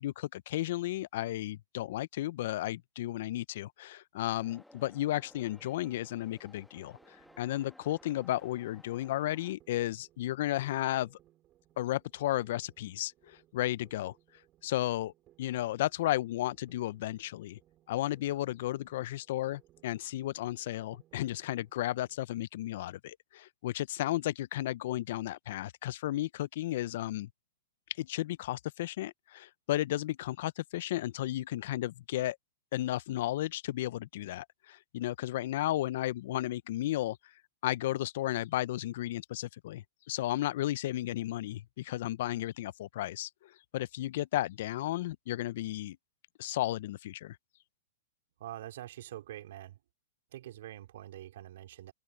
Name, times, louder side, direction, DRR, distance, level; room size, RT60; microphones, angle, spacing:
voice 1, 0.0-11.2 11.8-14.1 14.6-15.1 15.4-17.6 17.9-27.3 28.0-32.4 32.7-37.2 37.6-46.0 46.4-47.4, left 14 dB, 60° left, 0.6 m, -34 dB
sound 1, 4.3-9.6, left 1 dB, ahead, 1.3 m, -59 dB
sound 2, 4.7-22.2, right 14 dB, 30° right, 4.8 m, -67 dB
voice 2, 48.4-49.8 50.3-51.9, right 13 dB, 65° right, 4.2 m, -45 dB
open air
hypercardioid pair, 130°, 0 cm